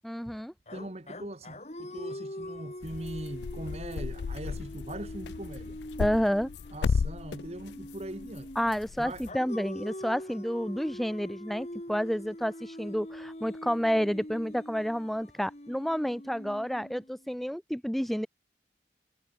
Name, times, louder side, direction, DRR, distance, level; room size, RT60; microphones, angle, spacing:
voice 1, 0.0-0.5 6.0-6.5 8.6-18.3, equal, ahead, 0.3 m, -30 dB
sound 1, 0.7-8.7 9.3-17.3, left 1 dB, 40° left, 3.0 m, -43 dB
voice 2, 0.7-5.8 6.7-8.5 9.0-9.2, right 1 dB, 35° right, 1.4 m, -41 dB
sound 2, 2.8-9.3, left 5 dB, 80° left, 0.4 m, -35 dB
head